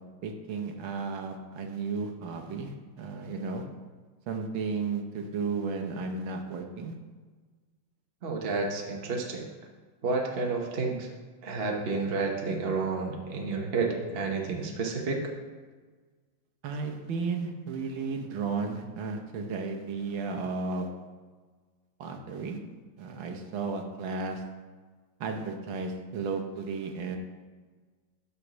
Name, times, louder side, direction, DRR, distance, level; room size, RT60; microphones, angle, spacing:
voice 1, 0.2-3.6 4.3-7.0 16.6-20.9 22.0-22.6 23.0-24.4 25.2-27.2, right 4 dB, 80° right, 3 dB, 1.6 m, -34 dB
voice 2, 8.2-9.4 10.0-11.1 11.4-15.2, right 4 dB, 45° right, 1 dB, 0.8 m, -30 dB
8.7 x 4.1 x 6.0 m, 1.4 s
omnidirectional pair, 2.1 m